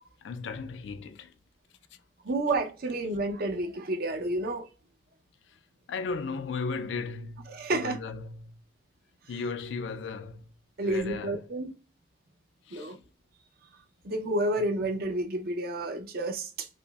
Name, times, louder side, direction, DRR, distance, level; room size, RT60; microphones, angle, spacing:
voice 1, 0.2-1.3 5.9-8.6 9.3-10.5 10.8-11.4 12.7-13.0, left 4 dB, 80° left, 0.4 m, -36 dB
voice 2, 2.2-4.7 7.5-8.0 10.8-11.7 12.7-13.0 14.0-16.7, right 2 dB, 55° right, 0.6 m, -30 dB
5.0 x 2.0 x 2.3 m
head